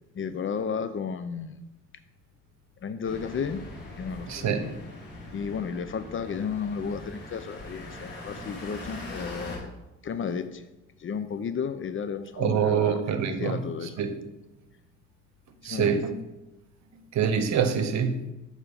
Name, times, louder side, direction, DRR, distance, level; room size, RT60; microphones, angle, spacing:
voice 1, 0.1-1.6 2.8-3.7 4.0-4.8 5.3-9.7 10.0-10.6 11.0-13.0 13.3-13.9 15.6-16.1, left 6 dB, 45° left, 12 dB, 0.5 m, -33 dB
sound 1, 3.0-9.6, left 1 dB, 85° left, 2.4 m, -41 dB
voice 2, 4.3-4.7 12.4-13.6 14.0-14.2 15.6-16.1 17.1-18.2, right 7 dB, 65° right, 8 dB, 0.9 m, -25 dB
6.8 x 4.4 x 5.2 m, 0.99 s
cardioid pair, 90°, 30 cm